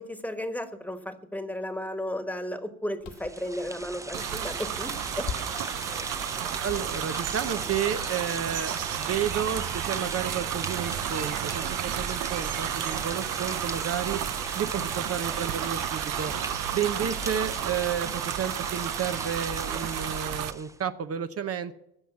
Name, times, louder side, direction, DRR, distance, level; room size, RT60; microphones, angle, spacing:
voice 1, 0.0-5.3 6.0-6.2, left 1 dB, 5° left, 9 dB, 1.3 m, -34 dB
sound 1, 3.0-3.4 5.2-5.7 6.7-7.8 9.5-10.1 11.9-12.2 13.9-14.3 16.3-16.7 17.7-17.9, left 7 dB, 75° left, 1.4 m, -42 dB
sound 2, 3.1-20.8, right 2 dB, 10° right, 0.6 m, -38 dB
sound 3, 4.1-20.5, right 12 dB, 85° right, 0.7 m, -32 dB
voice 2, 6.6-14.2 14.5-16.3 16.7-21.8, right 8 dB, 50° right, 10 dB, 0.8 m, -31 dB
15.5 x 6.3 x 8.3 m, 0.81 s
cardioid pair, 90°, 30 cm